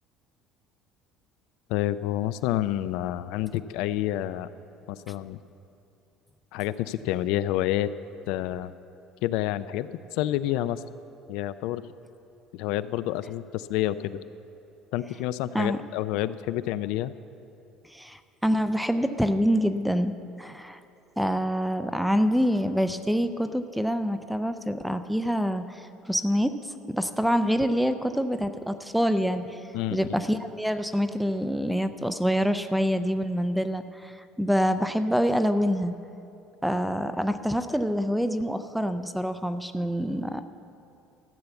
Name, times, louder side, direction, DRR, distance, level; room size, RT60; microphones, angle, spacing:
voice 1, 1.7-4.5 4.9-5.4 6.5-7.9 8.3-8.7 9.2-10.8 11.3-11.8 12.5-14.2 14.9-17.1 29.7-30.1, left 14 dB, 70° left, 14 dB, 0.4 m, -28 dB
voice 2, 17.9-20.8 21.2-25.8 26.1-26.6 26.9-29.6 29.9-35.9 36.6-40.5, equal, ahead, 10 dB, 0.4 m, -26 dB
13.5 x 7.0 x 8.1 m, 2.7 s
cardioid pair, 175°, 0 cm